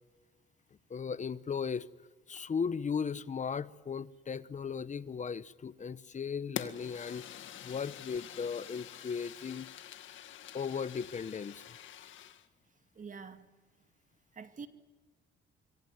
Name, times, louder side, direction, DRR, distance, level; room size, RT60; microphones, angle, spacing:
voice 1, 0.9-1.9 2.3-7.3 7.6-9.7 10.5-11.6, left 6 dB, 40° left, 1.1 m, -36 dB
Fire, 6.6-12.5, left 10 dB, 75° left, 2.0 m, -46 dB
voice 2, 13.0-13.5 14.3-14.7, right 5 dB, 40° right, 2.4 m, -46 dB
25.5 x 24.0 x 9.5 m
cardioid pair, 90°, 20 cm